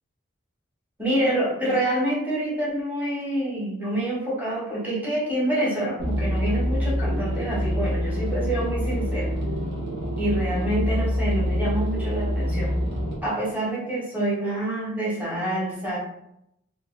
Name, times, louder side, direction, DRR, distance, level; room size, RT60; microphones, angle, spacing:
voice 1, 1.0-9.3 10.2-12.7 13.2-16.0, right 1 dB, 10° right, -7 dB, 1.3 m, -27 dB
sound 1, 6.0-13.2, equal, 65° right, 1.0 m, -26 dB
3.4 x 2.5 x 3.2 m, 0.79 s
head